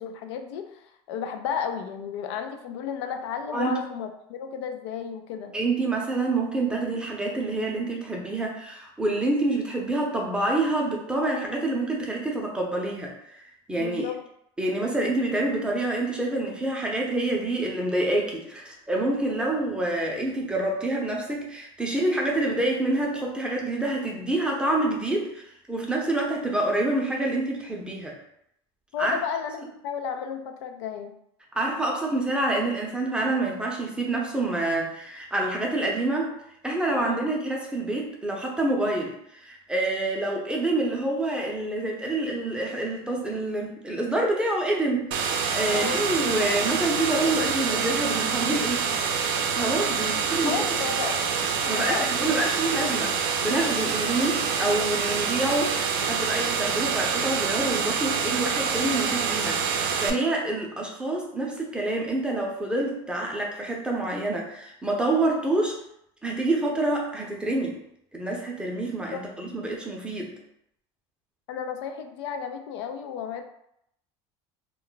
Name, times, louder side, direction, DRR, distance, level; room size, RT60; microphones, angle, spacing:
voice 1, 0.0-5.5 13.8-14.2 28.9-31.2 37.0-37.2 45.7-46.1 50.0-50.1 50.4-52.1 69.1-69.2 71.5-73.4, left 7 dB, 85° left, 6 dB, 0.4 m, -33 dB
voice 2, 5.5-13.4 13.7-14.0 14.6-28.2 29.0-29.2 29.6-29.7 31.5-36.3 36.6-48.9 49.5-50.6 51.7-65.8 66.2-67.8 68.1-70.3, right 2 dB, 5° right, -1 dB, 0.5 m, -27 dB
sound 1, 45.1-60.1, right 6 dB, 70° right, 0.5 m, -26 dB
2.2 x 2.1 x 3.8 m, 0.76 s
supercardioid pair, 120°, 14 cm